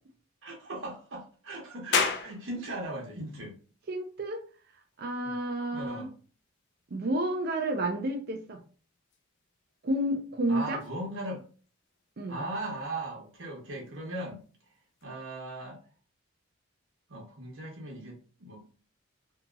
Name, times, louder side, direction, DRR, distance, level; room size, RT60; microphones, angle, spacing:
voice 1, 0.4-3.5 5.2-5.3 5.7-6.1 10.5-11.4 12.3-14.4 15.0-15.8 17.1-18.6, right 1 dB, 65° right, -2 dB, 1.0 m, -38 dB
sound 1, 1.9-15.0, left 5 dB, 55° left, 0.5 m, -40 dB
voice 2, 3.9-4.4 5.0-6.1 6.9-8.6 9.8-10.8 12.2-12.4, right 1 dB, 50° right, 4 dB, 0.4 m, -30 dB
2.8 x 2.8 x 2.3 m, 0.39 s
head